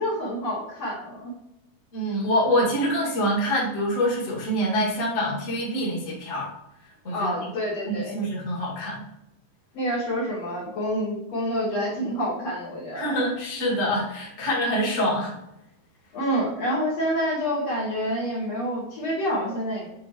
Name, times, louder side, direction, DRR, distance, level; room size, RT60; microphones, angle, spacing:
voice 1, 0.0-1.3 7.1-8.2 9.7-13.2 16.1-19.9, equal, 55° left, -7 dB, 2.4 m, -28 dB
voice 2, 1.9-6.5 7.0-7.5 7.9-9.0 12.9-15.3, equal, 30° left, -5 dB, 1.8 m, -25 dB
9.4 x 4.1 x 3.0 m, 0.87 s
omnidirectional pair, 4.0 m